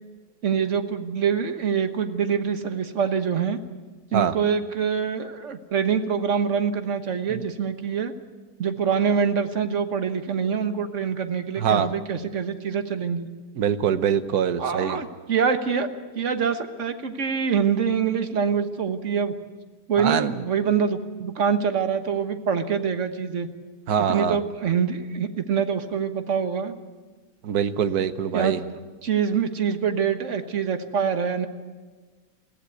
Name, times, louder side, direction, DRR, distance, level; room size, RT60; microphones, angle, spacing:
voice 1, 0.4-3.6 4.1-8.1 8.6-13.3 14.6-15.9 16.1-19.3 19.9-23.5 24.1-26.8 28.3-28.6 29.0-31.5, right 6 dB, 55° right, 8 dB, 1.5 m, -25 dB
voice 2, 11.6-11.9 13.6-15.0 20.0-20.3 23.9-24.4 27.4-28.6, right 8 dB, 80° right, 11 dB, 1.4 m, -23 dB
22.0 x 15.5 x 8.3 m, 1.4 s
omnidirectional pair, 1.6 m